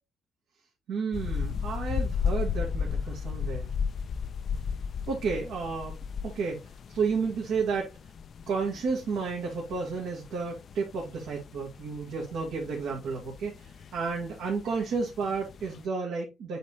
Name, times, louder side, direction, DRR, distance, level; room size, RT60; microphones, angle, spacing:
voice 1, 0.9-3.7 5.1-6.0 6.2-6.6 6.9-7.9 8.5-16.6, right 5 dB, 85° right, 2.0 m, -32 dB
sound 1, 1.1-15.9, left 6 dB, 55° left, 0.4 m, -35 dB
7.8 x 4.3 x 3.0 m
cardioid pair, 90°, 0 cm